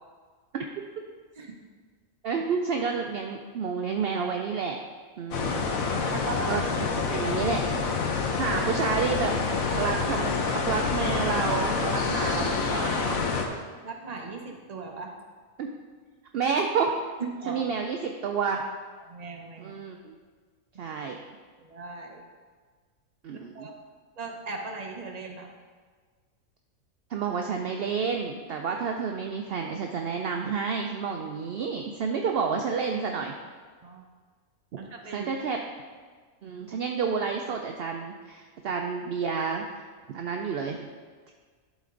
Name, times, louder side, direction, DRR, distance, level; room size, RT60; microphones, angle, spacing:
voice 1, 2.2-4.8 5.2-6.1 6.5-7.6 8.4-9.3 9.8-13.2 15.6-15.7 16.3-16.9 17.5-18.6 19.6-20.1 20.8-21.2 23.2-23.7 27.1-33.3 35.1-35.6 36.4-39.6 40.1-40.9, right 5 dB, 65° right, 3 dB, 0.6 m, -30 dB
sound 1, 5.3-13.5, left 4 dB, 75° left, 1.2 m, -27 dB
voice 2, 6.1-6.6 13.8-15.1 17.2-17.6 19.0-19.8 21.6-22.2 23.5-23.8 24.2-25.5 33.8-34.0 34.8-35.3, right 4 dB, 35° right, 2 dB, 0.8 m, -38 dB
11.5 x 4.2 x 3.8 m, 1.5 s
omnidirectional pair, 1.5 m